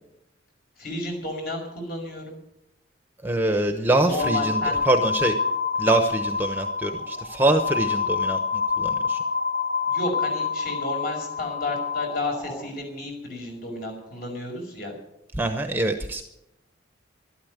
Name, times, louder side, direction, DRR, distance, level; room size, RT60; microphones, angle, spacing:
voice 1, 0.8-2.3 4.0-4.8 9.9-14.9, left 2 dB, 50° left, 2 dB, 5.6 m, -32 dB
voice 2, 3.2-5.3 5.8-9.2 15.4-16.2, right 2 dB, 10° right, 6 dB, 1.0 m, -24 dB
sound 1, 4.2-12.7, left 5 dB, 20° left, 1.6 m, -27 dB
13.0 x 12.5 x 8.1 m, 0.83 s
head